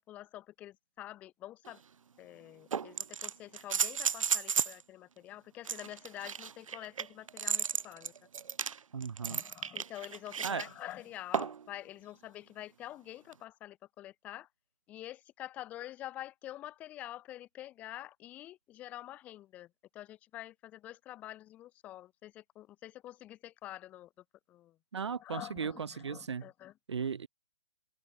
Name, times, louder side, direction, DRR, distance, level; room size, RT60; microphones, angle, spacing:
voice 1, 0.0-1.8 2.2-8.1 9.2-14.5 14.9-24.8 25.2-26.7, left 14 dB, 10° left, 1.8 m, -47 dB
sound 1, 1.7-1.8 2.7-4.8 5.6-10.7 11.3-11.7 13.3-13.4, right 7 dB, 70° right, 0.7 m, -34 dB
voice 2, 8.9-9.4 10.4-10.6 24.9-26.4 26.9-27.3, right 6 dB, 50° right, 1.5 m, -36 dB
open air
hypercardioid pair, 180°, 18 cm